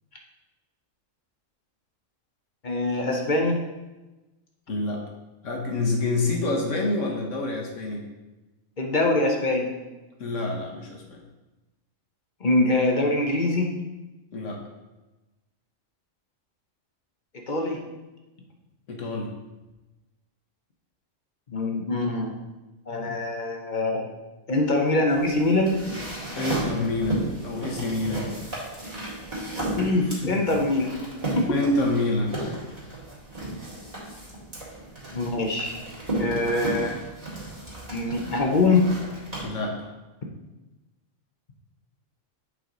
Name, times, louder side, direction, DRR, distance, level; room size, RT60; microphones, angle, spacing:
voice 1, 2.6-3.6 8.8-9.7 12.4-13.7 17.5-17.8 21.5-22.3 22.9-24.1 24.5-25.8 29.7-30.9 31.3-31.6 35.1-35.8 36.1-37.0 37.9-38.9, left 2 dB, 40° left, 1 dB, 0.9 m, -23 dB
voice 2, 4.7-5.0 5.4-8.0 10.2-11.2 14.3-14.6 18.9-19.3 26.4-28.3 30.2-30.3 31.5-32.5 39.4-39.9, left 2 dB, 70° left, 1 dB, 1.5 m, -27 dB
sound 1, 25.1-39.4, right 1 dB, 30° right, 2.1 m, -34 dB
8.1 x 4.8 x 3.8 m, 1.1 s
omnidirectional pair, 1.4 m